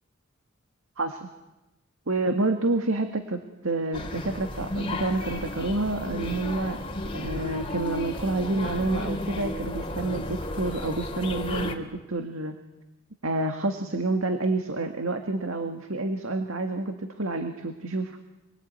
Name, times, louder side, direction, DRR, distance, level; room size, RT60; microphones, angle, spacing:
voice 1, 1.0-1.3 2.1-6.8 7.1-12.6 13.2-18.2, right 2 dB, 85° right, 6 dB, 1.9 m, -28 dB
sound 1, 3.9-11.7, left 1 dB, 25° left, 3.0 m, -33 dB
28.0 x 22.0 x 9.3 m, 1.0 s
head